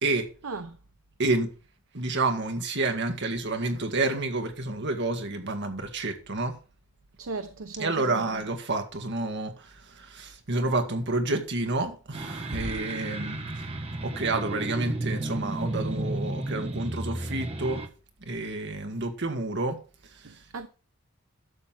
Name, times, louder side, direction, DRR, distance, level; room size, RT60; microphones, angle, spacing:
voice 1, 0.4-0.8 7.2-8.2 20.2-20.7, right 4 dB, 75° right, 0.7 m, -37 dB
voice 2, 1.2-1.5 1.9-6.6 7.8-17.8 18.2-19.8 20.0-20.7, right 2 dB, 55° right, 1.9 m, -29 dB
sound 1, 12.1-17.9, right 2 dB, 30° right, 1.3 m, -33 dB
12.0 x 4.1 x 7.7 m
head